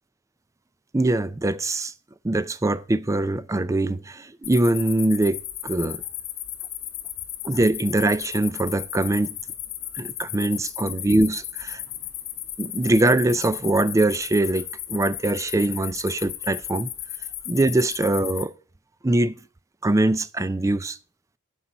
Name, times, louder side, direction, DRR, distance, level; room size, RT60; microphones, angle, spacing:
voice 1, 0.9-1.9 2.2-6.0 7.4-9.4 9.9-11.8 12.6-16.9 17.5-18.5 19.0-19.3 19.8-21.0, right 2 dB, 15° right, 0.4 m, -23 dB
sound 1, 4.4-18.4, left 12 dB, 70° left, 1.3 m, -35 dB
9.8 x 5.7 x 6.6 m
head